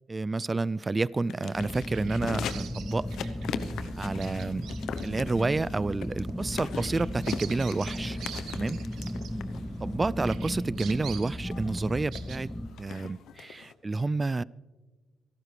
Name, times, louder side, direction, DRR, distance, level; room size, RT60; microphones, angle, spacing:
voice 1, 0.1-3.1 4.0-4.7 5.0-8.2 8.5-8.8 9.8-12.5 12.8-14.4, right 3 dB, 25° right, 22 dB, 0.3 m, -29 dB
sound 1, 1.2-13.7, left 8 dB, 75° left, 0.8 m, -41 dB
sound 2, 1.5-12.7, equal, 5° left, 0.8 m, -35 dB
Bird vocalization bird call bird song, 1.5-9.9 10.2-12.4, right 9 dB, 75° right, 1.0 m, -46 dB
27.5 x 12.0 x 3.3 m, 1.3 s
cardioid pair, 90°, 0 cm